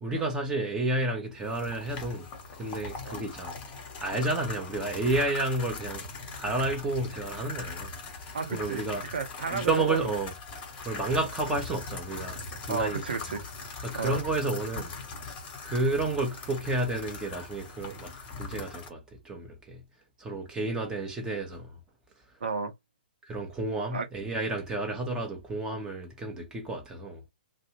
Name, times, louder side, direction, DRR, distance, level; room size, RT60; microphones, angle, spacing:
voice 1, 0.0-2.3 2.6-3.6 4.0-6.1 6.3-7.9 8.2-9.1 9.5-10.3 10.8-13.0 13.8-14.9 15.6-19.8 20.2-21.8 23.2-27.2, right 2 dB, 15° right, 0.8 m, -31 dB
sound 1, 1.4-18.9, left 4 dB, 30° left, 1.1 m, -40 dB
voice 2, 8.3-8.8 9.1-10.1 12.7-13.4 13.9-14.2 22.4-22.7 23.9-24.1, right 5 dB, 70° right, 0.7 m, -32 dB
2.5 x 2.0 x 3.0 m
figure-of-eight pair, 120°, 5 cm